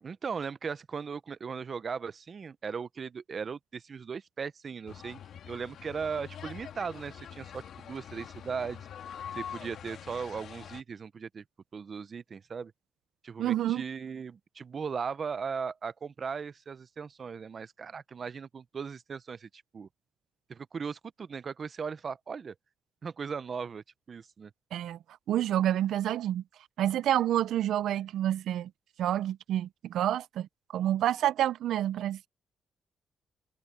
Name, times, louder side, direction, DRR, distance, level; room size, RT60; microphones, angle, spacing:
voice 1, 0.0-5.2 5.5-8.9 9.3-11.4 11.7-12.7 13.2-19.9 20.5-22.5 23.0-24.5, right 6 dB, 40° right, 0.5 m, -38 dB
sound 1, 4.9-10.8, left 9 dB, 70° left, 1.5 m, -45 dB
voice 2, 13.4-13.8 24.7-25.0 25.3-26.4 26.8-28.7 29.0-32.3, right 12 dB, 90° right, 0.4 m, -28 dB
cardioid pair, 145°, 0 cm